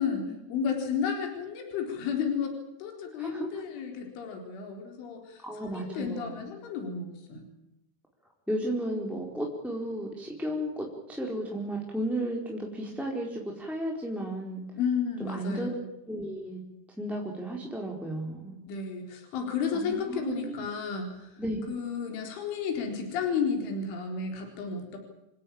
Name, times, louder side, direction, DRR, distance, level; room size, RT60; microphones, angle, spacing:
voice 1, 0.0-2.5 2.8-7.5 14.7-15.7 18.7-21.4 21.7-25.0, left 6 dB, 75° left, 3 dB, 6.6 m, -32 dB
voice 2, 5.4-6.5 8.5-14.6 15.2-15.8 16.1-16.6 17.0-18.6 19.7-20.7 21.4-21.6, right 1 dB, ahead, -1 dB, 3.7 m, -34 dB
28.5 x 16.5 x 8.7 m, 0.89 s
omnidirectional pair, 5.6 m